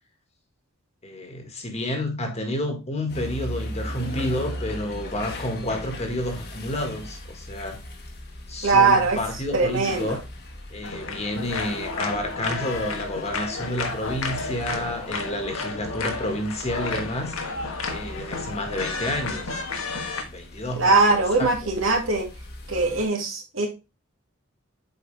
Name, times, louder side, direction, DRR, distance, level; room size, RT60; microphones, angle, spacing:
voice 1, 1.0-7.8 8.5-10.2 10.7-17.4 17.9-19.5 20.3-21.5, left 1 dB, 30° left, 1.7 m, -30 dB
sound 1, 3.1-23.1, equal, 50° left, 1.5 m, -39 dB
voice 2, 8.6-9.2 9.5-10.2 20.8-22.3 22.7-23.7, right 3 dB, 65° right, 2.2 m, -21 dB
sound 2, 10.8-20.2, left 3 dB, 85° left, 1.4 m, -32 dB
8.3 x 4.7 x 3.3 m
head